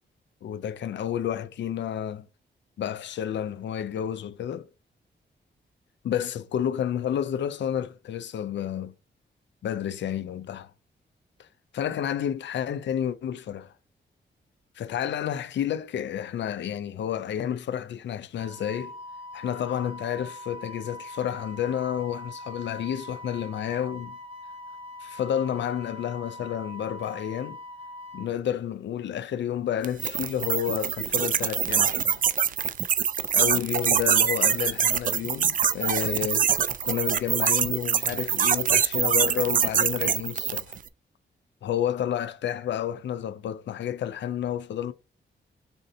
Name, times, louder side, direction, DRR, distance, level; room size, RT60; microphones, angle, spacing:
voice 1, 0.4-2.3 2.8-4.7 6.0-8.9 9.6-10.7 11.4-11.5 11.7-13.7 14.8-19.0 19.3-24.2 25.0-27.6 28.1-32.2 33.3-36.5 36.8-40.8 41.6-44.9, left 9 dB, 70° left, 0.5 m, -30 dB
Wind instrument woodwind instrument, 18.4-28.3, left 2 dB, 30° right, 1.1 m, -42 dB
sound 1, 29.8-40.8, right 8 dB, 45° right, 0.4 m, -24 dB
6.7 x 2.7 x 2.7 m
cardioid pair, 95°, 19 cm